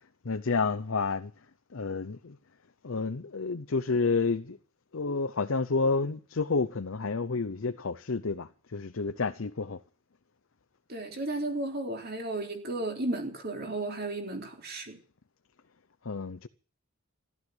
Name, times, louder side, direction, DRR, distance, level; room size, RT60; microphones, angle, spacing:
voice 1, 0.2-1.3 1.7-2.4 2.8-4.6 4.9-9.8 16.0-16.5, left 4 dB, 65° left, 0.7 m, -30 dB
voice 2, 10.9-15.0, right 2 dB, 45° right, 3.7 m, -34 dB
14.5 x 12.5 x 8.0 m
head